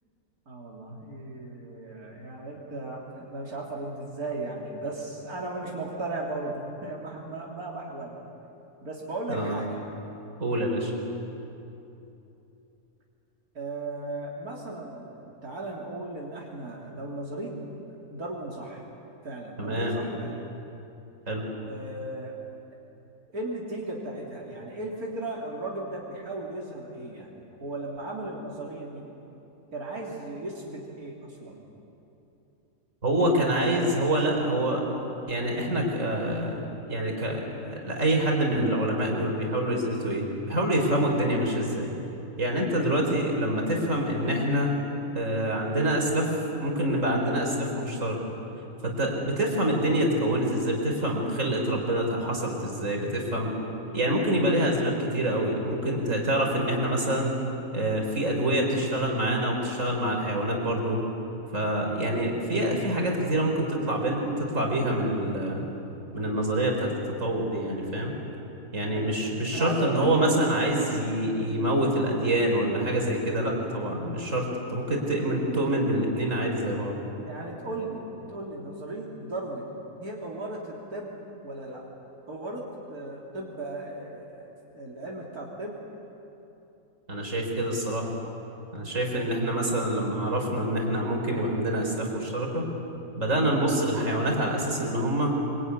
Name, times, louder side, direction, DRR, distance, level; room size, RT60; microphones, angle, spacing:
voice 1, 0.5-8.1 8.8-9.8 13.5-18.9 19.2-20.4 21.7-22.4 23.3-29.0 29.7-31.6 33.1-33.5 33.8-34.2 68.9-69.2 69.5-70.4 77.1-79.7 80.0-81.2 81.4-81.9 82.3-85.8, right 2 dB, 85° right, -3 dB, 3.7 m, -36 dB
voice 2, 9.3-9.6 10.4-10.9 19.6-20.0 21.3-21.4 33.0-34.8 35.3-41.9 42.4-44.7 45.1-46.3 46.6-48.2 48.8-53.5 53.9-57.3 57.7-61.0 61.5-65.6 66.1-66.9 67.2-68.1 68.7-76.9 87.1-88.2 88.7-92.6 93.2-95.3, right 1 dB, 60° right, 1 dB, 4.7 m, -26 dB
25.0 x 24.5 x 9.7 m, 2.9 s
omnidirectional pair, 1.5 m